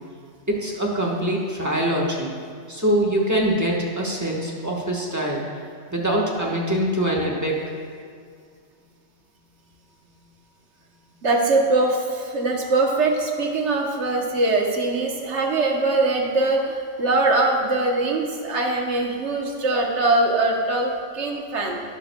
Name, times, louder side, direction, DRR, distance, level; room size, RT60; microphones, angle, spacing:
voice 1, 0.5-2.3 2.7-5.4 5.9-7.6, right 1 dB, 15° right, -3 dB, 1.1 m, -23 dB
voice 2, 11.2-21.8, right 2 dB, 70° right, 1 dB, 1.3 m, -22 dB
12.5 x 9.8 x 2.2 m, 2.1 s
omnidirectional pair, 1.2 m